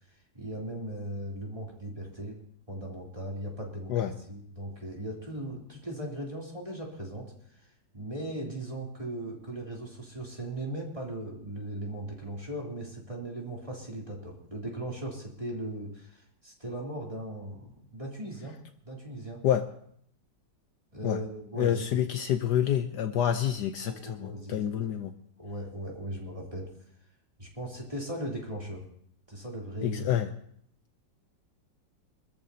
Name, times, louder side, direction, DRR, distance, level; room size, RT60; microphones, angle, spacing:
voice 1, 0.3-2.4 2.7-7.3 7.9-18.5 18.8-19.4 20.9-22.0 23.8-24.9 25.4-26.7 27.4-28.8 29.3-30.1, right 1 dB, 15° right, -2 dB, 3.1 m, -38 dB
voice 2, 21.6-25.1 29.8-30.3, left 10 dB, 70° left, 8 dB, 1.2 m, -28 dB
24.5 x 14.0 x 2.8 m, 0.65 s
omnidirectional pair, 2.0 m